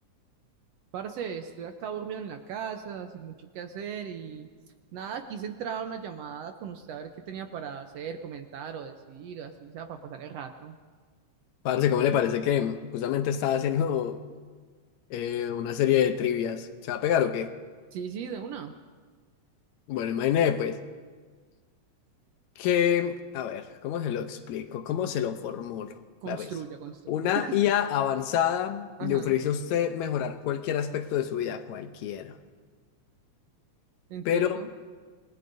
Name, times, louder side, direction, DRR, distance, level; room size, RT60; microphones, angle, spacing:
voice 1, 0.9-4.5 4.9-10.8 17.9-18.7 26.2-27.6 29.0-29.4 34.1-34.7, right 7 dB, 70° right, 6 dB, 1.6 m, -37 dB
voice 2, 11.7-14.2 15.1-17.5 19.9-20.8 22.6-25.9 26.3-26.5 27.1-32.3 34.3-34.6, left 10 dB, 80° left, 9 dB, 2.0 m, -27 dB
28.0 x 19.5 x 2.6 m, 1.5 s
omnidirectional pair, 3.4 m